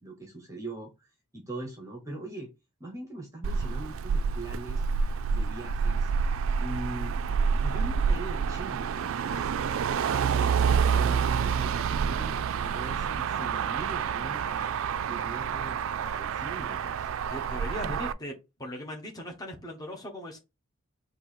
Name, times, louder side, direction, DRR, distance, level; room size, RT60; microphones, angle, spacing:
voice 1, 0.0-1.1 1.3-2.5 2.8-4.9 5.3-6.1 6.6-7.2 7.6-9.5 10.1-10.6 10.9-14.8 15.1-17.1, right 1 dB, 15° right, 0.9 m, -41 dB
Motor vehicle (road), 3.4-18.1, right 6 dB, 65° right, 0.3 m, -28 dB
voice 2, 17.3-20.4, left 1 dB, 15° left, 1.1 m, -39 dB
4.5 x 2.7 x 4.3 m
head